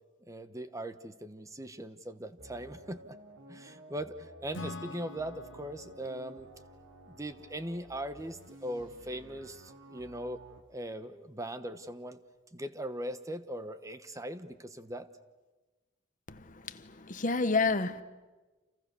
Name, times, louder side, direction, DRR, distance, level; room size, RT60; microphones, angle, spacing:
voice 1, 0.3-3.0 3.5-6.5 7.1-10.4 10.7-12.2 12.5-15.1, right 1 dB, 15° right, 1.0 m, -40 dB
sound 1, 2.4-10.6, right 1 dB, 80° right, 3.0 m, -53 dB
Acoustic guitar / Strum, 4.5-8.1, left 2 dB, 65° left, 1.3 m, -46 dB
voice 2, 16.3-18.0, left 3 dB, 40° left, 1.2 m, -30 dB
30.0 x 28.0 x 6.9 m
head